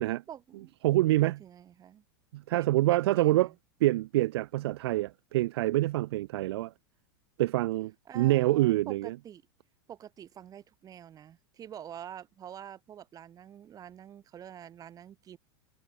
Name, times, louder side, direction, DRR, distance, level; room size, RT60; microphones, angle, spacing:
voice 1, 0.3-0.7 1.2-2.0 2.5-3.5 8.1-9.4 9.9-15.4, right 10 dB, 25° right, 5.1 m, -47 dB
voice 2, 0.8-1.3 2.3-3.5 3.8-6.7 7.4-9.1, right 16 dB, 75° right, 0.5 m, -26 dB
supercardioid pair, 135°, 13 cm